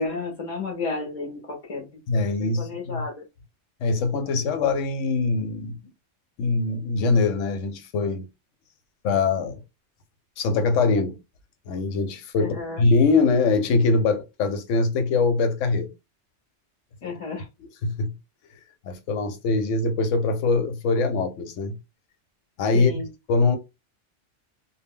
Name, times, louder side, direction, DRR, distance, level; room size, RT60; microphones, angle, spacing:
voice 1, 0.0-1.9 2.1-3.2 12.4-12.8 17.0-17.5 22.7-23.1, left 3 dB, 40° left, 0.5 m, -32 dB
voice 2, 2.1-3.0 3.8-5.9 6.4-8.2 9.0-9.6 10.4-11.2 11.7-15.9 17.8-18.1 18.8-21.8 22.6-22.9 23.3-23.6, left 3 dB, 90° left, 0.9 m, -23 dB
2.1 x 2.1 x 3.4 m
omnidirectional pair, 1.2 m